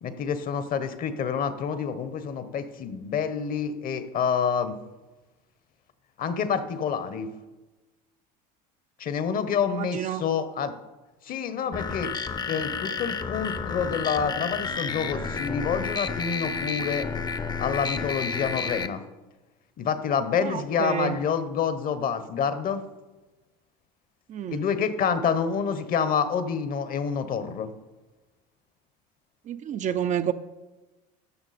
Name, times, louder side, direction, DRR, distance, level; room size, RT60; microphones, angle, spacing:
voice 1, 0.0-4.8 6.2-7.3 9.0-10.7 11.2-12.1 12.5-17.1 17.6-19.0 19.8-22.8 24.5-27.7, left 6 dB, 45° left, 1.0 m, -28 dB
voice 2, 9.8-10.2 20.4-21.2 24.3-24.6 29.5-30.3, right 10 dB, 35° right, 0.5 m, -29 dB
sound 1, 11.7-18.9, left 5 dB, 20° left, 0.7 m, -31 dB
14.0 x 6.1 x 4.2 m
supercardioid pair, 95°, 21 cm